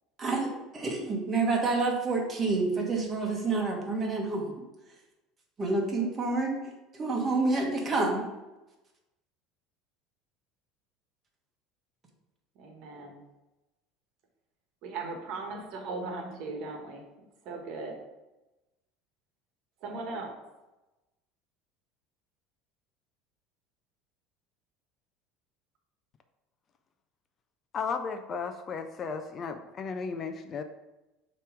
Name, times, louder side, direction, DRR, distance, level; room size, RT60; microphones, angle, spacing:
voice 1, 0.2-4.4 5.6-6.6 7.0-8.2, right 3 dB, 20° right, 0 dB, 1.3 m, -28 dB
voice 2, 12.5-13.2 14.8-17.1 17.4-18.0 19.8-20.4, right 3 dB, 55° right, 3 dB, 1.2 m, -38 dB
voice 3, 27.7-30.6, left 5 dB, 30° left, 8 dB, 0.4 m, -34 dB
6.6 x 3.0 x 4.9 m, 1.0 s
cardioid pair, 145°, 0 cm